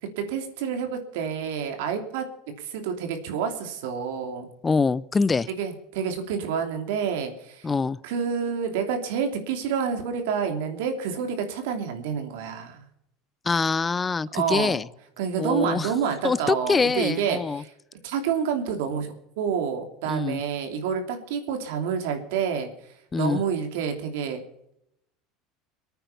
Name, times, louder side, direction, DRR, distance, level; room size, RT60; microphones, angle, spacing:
voice 1, 0.0-2.2 2.6-4.5 5.6-7.7 8.0-12.8 14.3-14.8 15.2-17.7 18.0-22.7 23.2-24.4, right 7 dB, 80° right, 5 dB, 2.9 m, -28 dB
voice 2, 4.6-5.5 7.6-8.0 13.5-14.9 15.4-15.9 16.2-17.6 20.1-20.4 23.1-23.4, left 4 dB, 15° left, 20 dB, 0.5 m, -24 dB
23.5 x 9.2 x 5.6 m, 0.77 s
supercardioid pair, 140°, 0 cm